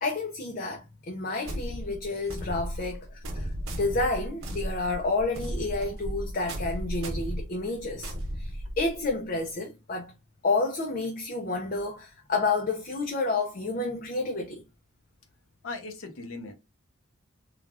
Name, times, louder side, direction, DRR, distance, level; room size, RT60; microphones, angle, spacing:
voice 1, 0.0-10.1 10.4-14.6, left 3 dB, 45° left, 0.5 m, -30 dB
sound 1, 1.5-9.1, equal, 85° right, 1.0 m, -35 dB
voice 2, 15.6-16.5, left 3 dB, 85° left, 0.7 m, -38 dB
3.3 x 2.3 x 2.3 m
head